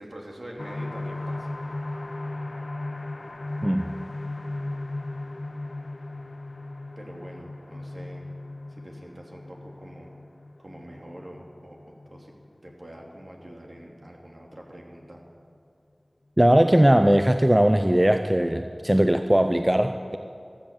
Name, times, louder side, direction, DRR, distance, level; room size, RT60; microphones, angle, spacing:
voice 1, 0.0-1.6 7.0-8.3 8.7-10.2 10.6-11.8 12.1-12.3 12.6-15.2, right 1 dB, 55° right, 0 dB, 2.7 m, -44 dB
sound 1, 0.6-14.1 14.5-14.6 15.0-15.1, left 2 dB, 65° left, 0.5 m, -37 dB
voice 2, 16.4-20.2, right 1 dB, 20° right, 7 dB, 0.6 m, -19 dB
15.0 x 13.0 x 7.3 m, 2.4 s
wide cardioid pair, 55°, 0 cm